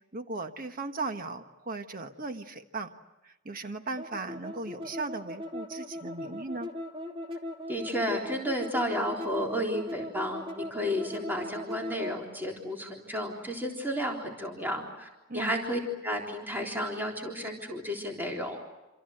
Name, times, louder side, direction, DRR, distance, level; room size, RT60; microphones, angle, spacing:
voice 1, 0.1-2.9 3.2-6.7 15.3-15.5, right 3 dB, 45° right, 7 dB, 1.4 m, -37 dB
sound 1, 4.0-12.2, left 1 dB, 25° right, 2.9 m, -38 dB
voice 2, 7.7-18.6, equal, 10° right, 0 dB, 3.7 m, -32 dB
28.0 x 27.0 x 7.9 m, 1.0 s
head